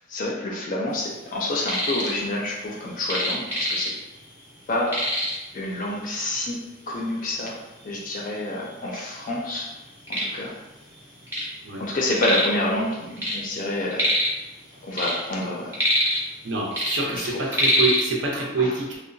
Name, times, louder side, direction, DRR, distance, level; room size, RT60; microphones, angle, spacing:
voice 1, 0.1-3.9 4.7-5.0 5.5-6.6 6.9-7.5 7.8-9.7 10.1-10.5 11.8-14.1 14.8-15.8 17.1-17.5 18.6-18.8, left 1 dB, 40° left, -3 dB, 0.4 m, -28 dB
sound 1, 1.4-2.2 2.4-4.2 4.5-4.6 4.9-5.5 6.3-6.4 6.9-7.0 7.8-7.9 8.1-9.0 9.5-11.5 11.8-12.6 12.9-14.4 14.8-16.4 16.7-18.0, equal, 10° right, 0.6 m, -25 dB
voice 2, 16.4-19.0, right 3 dB, 65° right, -2 dB, 0.6 m, -26 dB
2.8 x 2.0 x 2.5 m, 1.0 s
head